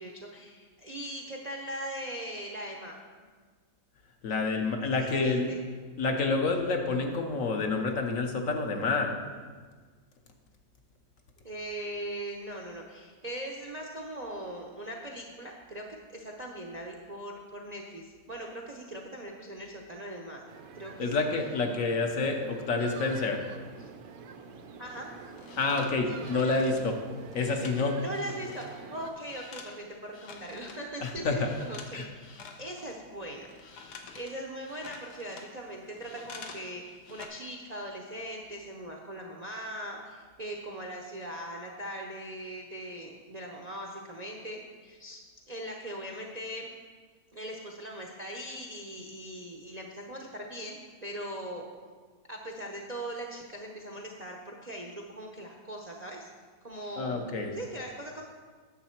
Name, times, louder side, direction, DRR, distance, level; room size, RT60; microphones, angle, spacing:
voice 1, 0.0-3.0 4.9-5.6 11.4-20.4 20.7-21.1 23.8-23.9 24.8-25.1 26.1-26.2 27.7-45.2 45.5-46.7 47.3-51.6 52.3-56.3 56.6-57.2 57.5-58.2, right 1 dB, 40° right, 0 dB, 0.6 m, -40 dB
voice 2, 4.2-5.5 6.0-9.1 21.0-23.4 25.6-27.0 27.3-28.0 31.0-31.5 31.9-32.1 57.0-57.5, left 3 dB, 60° left, 3 dB, 1.2 m, -28 dB
sound 1, 20.5-29.1, right 5 dB, 70° right, 1.1 m, -46 dB
sound 2, 24.9-28.8 29.0-30.9 31.3-32.0 32.2-36.7 36.9-37.3, left 5 dB, 85° left, 1.4 m, -48 dB
9.7 x 7.1 x 4.4 m, 1.5 s
omnidirectional pair, 1.6 m